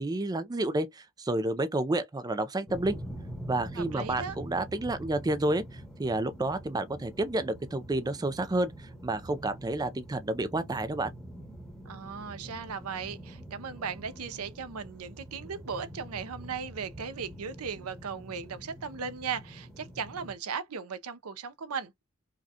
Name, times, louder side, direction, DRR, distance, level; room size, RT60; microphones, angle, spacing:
voice 1, 0.0-3.0 3.5-11.1, right 2 dB, 20° right, 0.4 m, -30 dB
sound 1, 2.7-20.3, right 1 dB, 5° left, 1.1 m, -45 dB
voice 2, 3.8-4.4 11.9-21.9, right 6 dB, 85° right, 0.6 m, -37 dB
4.9 x 2.3 x 2.7 m
head